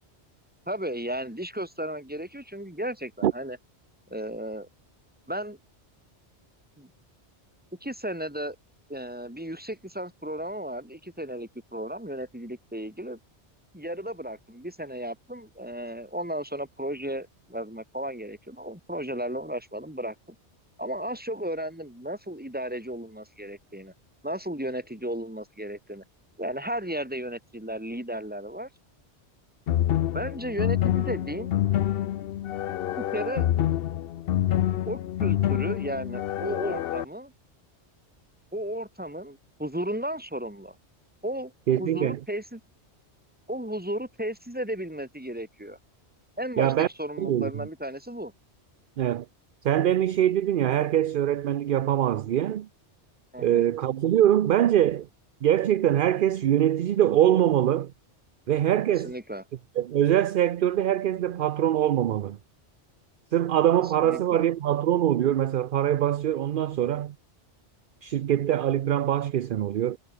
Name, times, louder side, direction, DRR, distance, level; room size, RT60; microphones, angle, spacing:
voice 1, 0.7-3.6 4.1-4.7 5.3-5.6 6.8-6.9 7.8-8.5 8.9-13.2 13.7-20.1 20.8-23.9 24.2-26.0 26.4-28.7 30.1-31.5 33.0-33.5 34.9-37.3 38.5-40.7 41.2-41.5 41.8-42.6 43.5-45.8 46.4-48.3 53.3-53.7 59.0-59.4 64.0-64.4, right 1 dB, 10° right, 3.2 m, -34 dB
sound 1, 29.7-37.0, left 11 dB, 65° left, 0.7 m, -27 dB
voice 2, 41.7-42.2 46.6-46.9 47.2-47.5 49.0-49.3 49.6-52.7 53.4-55.1 55.4-57.9 58.5-59.1 59.8-62.4 63.3-67.1 68.0-70.0, right 11 dB, 60° right, 0.7 m, -23 dB
omnidirectional pair, 1.2 m